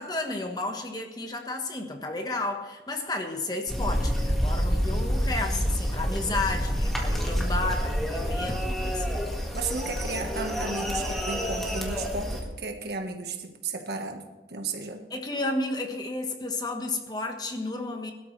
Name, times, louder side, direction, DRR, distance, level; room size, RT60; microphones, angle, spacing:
voice 1, 0.0-9.2 15.1-18.1, left 2 dB, 25° left, 4 dB, 1.3 m, -32 dB
sound 1, 3.7-12.4, equal, ahead, 1.9 m, -28 dB
voice 2, 9.5-14.2 14.5-15.0, right 3 dB, 70° right, 4 dB, 1.4 m, -34 dB
21.5 x 13.0 x 3.3 m, 1.1 s
head